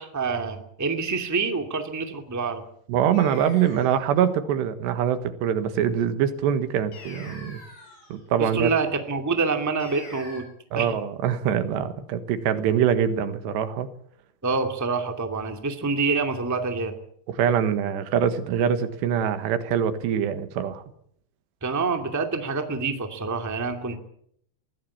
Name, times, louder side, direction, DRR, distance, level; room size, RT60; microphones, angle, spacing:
voice 1, 0.0-2.6 8.4-10.4 10.7-10.9 14.4-16.9 21.6-24.0, right 4 dB, 10° right, 5 dB, 1.2 m, -27 dB
voice 2, 2.9-7.6 8.1-8.7 10.7-13.9 17.3-20.8, right 9 dB, 90° right, 10 dB, 3.7 m, -24 dB
sound 1, 3.1-4.0 6.9-8.2 9.8-10.4, left 2 dB, 55° left, 9.3 m, -43 dB
23.0 x 16.5 x 8.7 m, 0.69 s
omnidirectional pair, 4.9 m